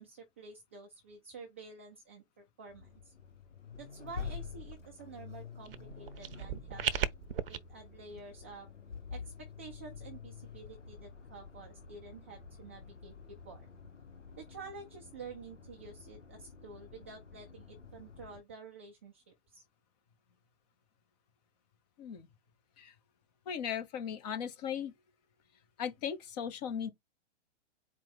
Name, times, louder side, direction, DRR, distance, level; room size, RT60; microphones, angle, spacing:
voice 1, 0.0-3.1 3.8-7.1 7.5-8.7 9.1-13.1 13.4-13.7 14.4-19.6, right 4 dB, 10° right, 0.3 m, -50 dB
Accelerating revving vroom, 2.7-18.4, left 6 dB, 90° left, 0.8 m, -48 dB
sound 1, 5.6-7.6, right 8 dB, 50° right, 0.6 m, -36 dB
voice 2, 23.5-24.9 25.8-26.9, left 8 dB, 35° left, 0.9 m, -37 dB
4.6 x 2.2 x 4.2 m
figure-of-eight pair, 115°, 36 cm